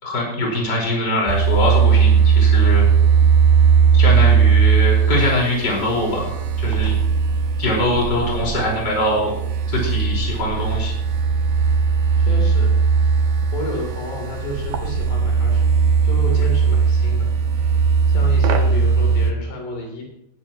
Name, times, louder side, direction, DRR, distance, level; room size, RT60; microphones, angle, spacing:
voice 1, 0.0-2.9 3.9-6.9 7.6-9.3 9.7-10.9, left 1 dB, 25° left, -2 dB, 5.2 m, -22 dB
sound 1, 1.3-19.3, right 6 dB, 70° right, 2.9 m, -18 dB
voice 2, 12.2-12.7 13.5-15.6 16.0-17.7 18.1-20.0, left 1 dB, 70° left, 0 dB, 5.6 m, -31 dB
20.0 x 12.5 x 3.1 m, 0.79 s
omnidirectional pair, 5.0 m